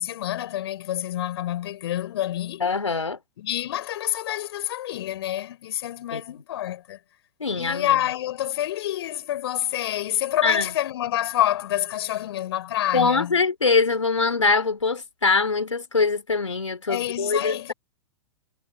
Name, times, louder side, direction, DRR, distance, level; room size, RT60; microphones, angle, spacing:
voice 1, 0.0-2.6 3.4-7.0 7.5-13.4 16.9-17.7, left 13 dB, 55° left, 5.1 m, -27 dB
voice 2, 2.6-3.2 6.1-6.2 7.4-7.9 10.4-10.7 12.9-17.7, left 4 dB, 80° left, 3.9 m, -23 dB
figure-of-eight pair, 105°, 16 cm